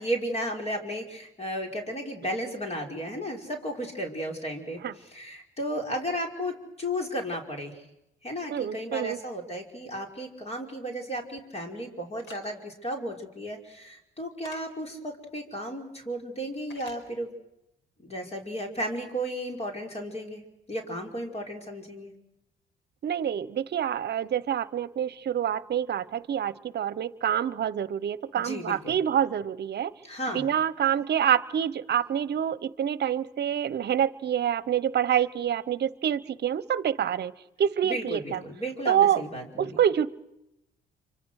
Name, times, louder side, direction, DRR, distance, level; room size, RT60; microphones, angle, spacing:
voice 1, 0.0-7.8 8.2-17.3 18.0-20.4 20.7-22.1 28.3-29.0 30.0-30.5 37.8-39.8, equal, 30° left, 2 dB, 5.4 m, -34 dB
voice 2, 8.5-9.2 23.0-29.9 30.3-37.3 37.6-38.4 38.9-39.2 39.6-40.1, right 9 dB, 55° right, 17 dB, 1.0 m, -26 dB
sound 1, 12.2-12.4 14.4-14.6 16.7-17.0, left 2 dB, 75° left, 5.1 m, -46 dB
27.5 x 25.5 x 6.5 m, 0.86 s
cardioid pair, 90°, 20 cm